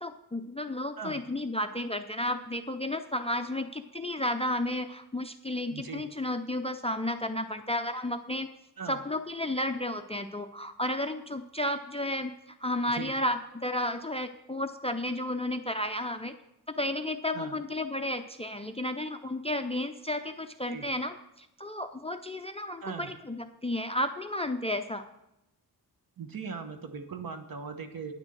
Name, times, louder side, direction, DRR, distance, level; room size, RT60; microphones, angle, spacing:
voice 1, 0.0-8.5 8.9-16.3 16.7-25.1, left 1 dB, 15° left, 9 dB, 0.3 m, -32 dB
voice 2, 5.7-6.0 8.8-9.0 12.9-13.1 17.3-17.5 20.7-20.9 22.8-23.1 26.2-28.1, right 5 dB, 60° right, 8 dB, 1.1 m, -39 dB
9.8 x 6.2 x 7.5 m, 0.87 s
wide cardioid pair, 170°, 39 cm